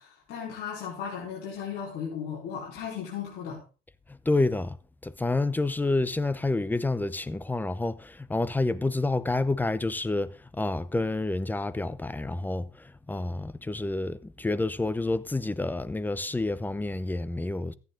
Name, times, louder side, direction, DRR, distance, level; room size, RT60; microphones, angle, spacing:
voice 1, 0.0-3.6, left 7 dB, 80° left, 4.5 m, -36 dB
voice 2, 4.3-4.8 5.0-17.7, left 2 dB, 10° left, 0.8 m, -29 dB
14.0 x 9.4 x 3.9 m
cardioid pair, 110°, 17 cm